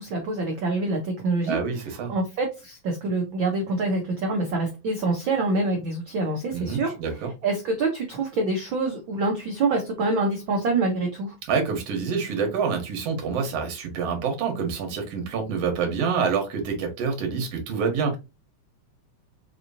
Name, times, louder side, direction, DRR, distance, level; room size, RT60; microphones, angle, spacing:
voice 1, 0.0-1.6 2.1-6.9 7.4-11.4, right 3 dB, 80° right, 1.1 m, -26 dB
voice 2, 1.5-2.1 6.5-7.3 11.5-18.2, right 5 dB, 60° right, 2.1 m, -27 dB
5.3 x 3.0 x 2.6 m
omnidirectional pair, 3.4 m